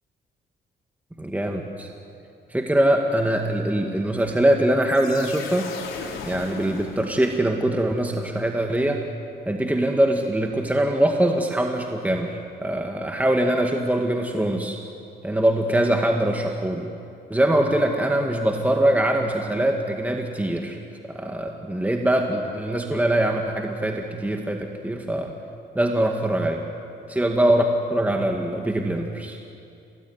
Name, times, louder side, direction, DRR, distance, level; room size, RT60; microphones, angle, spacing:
voice 1, 1.2-1.9 2.5-5.7 6.3-9.0 9.5-14.8 15.2-16.9 17.3-20.8 21.1-25.3 25.8-26.6 27.2-27.6 27.9-29.4, right 1 dB, 10° right, 2 dB, 2.0 m, -23 dB
sound 1, 4.8-7.6, left 5 dB, 90° left, 3.9 m, -37 dB
27.5 x 18.5 x 9.5 m, 2.6 s
cardioid pair, 90°, 20 cm